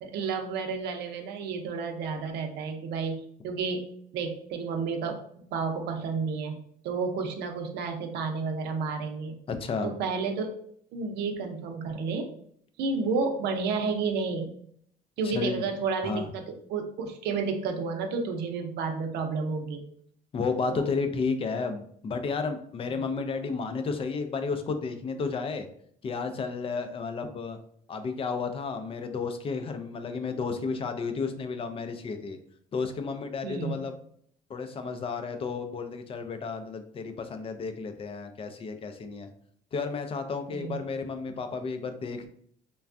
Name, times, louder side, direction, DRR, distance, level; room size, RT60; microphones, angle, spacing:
voice 1, 0.0-6.6 6.8-9.4 9.8-10.5 10.9-12.3 12.8-14.5 15.2-19.8 20.7-20.9 22.9-23.0 33.4-33.8 40.5-40.8, right 4 dB, 80° right, 4 dB, 0.6 m, -31 dB
voice 2, 9.5-9.9 15.3-15.7 16.0-16.3 20.3-25.7 26.0-27.6 27.9-32.4 32.7-33.9 34.5-39.3 39.7-42.3, left 4 dB, 35° left, 7 dB, 0.4 m, -32 dB
3.3 x 2.2 x 2.5 m, 0.64 s
cardioid pair, 110°, 17 cm